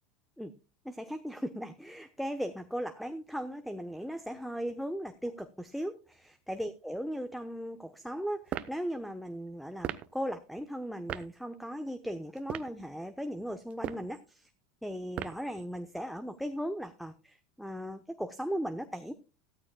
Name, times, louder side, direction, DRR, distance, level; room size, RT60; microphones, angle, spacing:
voice 1, 0.8-14.5 14.8-19.1, equal, ahead, 10 dB, 1.0 m, -37 dB
sound 1, 8.5-8.8 9.8-10.1 11.1-11.3 12.4-12.8 13.7-14.1 15.1-15.5, right 11 dB, 45° right, 0.9 m, -36 dB
15.0 x 13.5 x 2.3 m, 0.30 s
hypercardioid pair, 90°, 3 cm